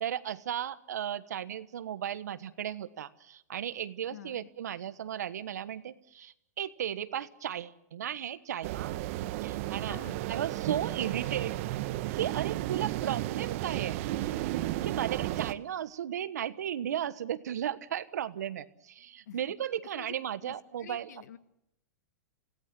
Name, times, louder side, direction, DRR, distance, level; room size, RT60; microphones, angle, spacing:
voice 1, 0.0-8.9 9.4-10.0 10.3-11.6 12.1-14.1 14.8-21.1, right 10 dB, 80° right, 15 dB, 1.3 m, -35 dB
voice 2, 4.1-4.5 9.9-10.2 19.3-19.4 19.9-20.1 20.4-21.4, left 11 dB, 75° left, 14 dB, 1.5 m, -48 dB
sound 1, 8.6-15.5, right 15 dB, 55° right, 1.1 m, -33 dB
28.0 x 17.5 x 7.7 m, 0.79 s
hypercardioid pair, 125°, 9 cm